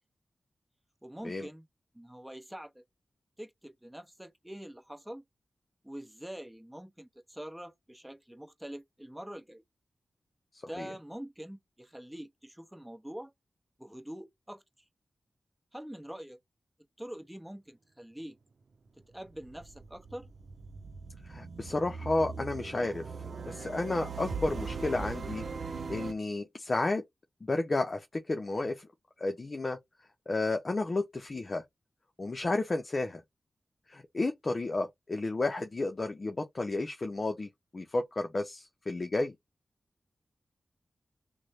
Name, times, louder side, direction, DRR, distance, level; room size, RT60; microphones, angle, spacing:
voice 1, 1.0-1.7 1.9-2.8 3.4-5.2 5.8-9.6 10.7-13.3 13.8-14.6 15.7-16.4 17.0-18.4 19.1-20.3, right 1 dB, 10° right, 0.9 m, -44 dB
sound 1, 18.9-26.1, right 4 dB, 70° right, 0.7 m, -40 dB
voice 2, 21.3-23.0 23.5-25.4 25.9-27.0 27.4-28.9 29.2-29.8 30.3-31.6 32.2-33.2 33.9-39.3, left 2 dB, 50° left, 0.6 m, -32 dB
3.0 x 2.2 x 4.1 m
cardioid pair, 45°, 0 cm